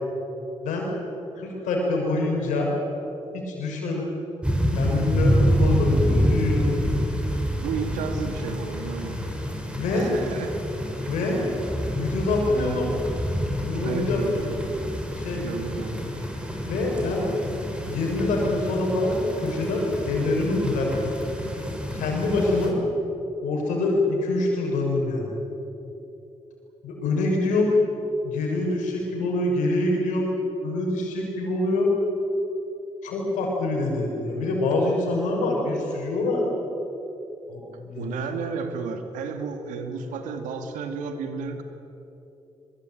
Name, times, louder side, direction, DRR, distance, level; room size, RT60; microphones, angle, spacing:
voice 1, 1.4-2.7 3.3-4.1 4.7-6.7 9.7-10.1 11.1-11.4 11.9-12.9 13.6-14.5 15.2-15.4 16.6-17.3 17.8-21.1 21.9-22.8 23.4-25.3 26.8-27.7 28.2-30.3 30.6-31.9 33.0-36.5 37.5-38.2, left 2 dB, 85° left, -1 dB, 6.6 m, -25 dB
sound 1, 4.4-22.7, equal, 10° right, 6.8 m, -27 dB
voice 2, 7.6-9.4 9.9-10.6 11.0-11.1 12.6-12.8 13.8-14.4 15.4-16.0 38.0-41.6, right 4 dB, 90° right, 6 dB, 2.3 m, -32 dB
23.0 x 22.5 x 9.3 m, 3.0 s
supercardioid pair, 45°, 13 cm